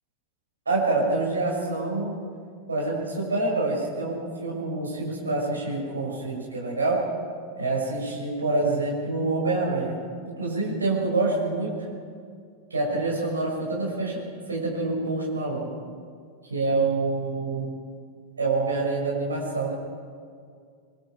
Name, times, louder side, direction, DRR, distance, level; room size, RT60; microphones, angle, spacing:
voice 1, 0.6-2.2 2.7-7.0 7.6-10.0 10.2-11.8 12.7-14.2 14.5-15.7 16.5-17.7 18.4-19.7, right 3 dB, 75° right, -3 dB, 6.4 m, -26 dB
25.0 x 24.0 x 4.9 m, 2.2 s
figure-of-eight pair, 90°, 0 cm